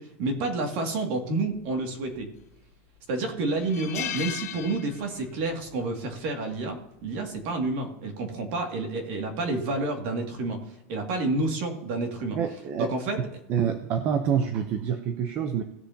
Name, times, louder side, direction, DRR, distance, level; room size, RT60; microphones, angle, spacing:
voice 1, 0.0-2.3 3.1-10.6 10.9-12.4 12.7-13.3, right 2 dB, 40° right, 3 dB, 2.2 m, -29 dB
sound 1, 2.2-2.7 3.1-3.2 3.6-5.4 5.7-5.9 7.1-7.4, left 11 dB, 85° left, 1.3 m, -36 dB
voice 2, 12.3-12.9 13.5-15.6, right 7 dB, 25° right, 7 dB, 0.6 m, -27 dB
18.5 x 6.7 x 2.8 m, 0.90 s
supercardioid pair, 180°, 8 cm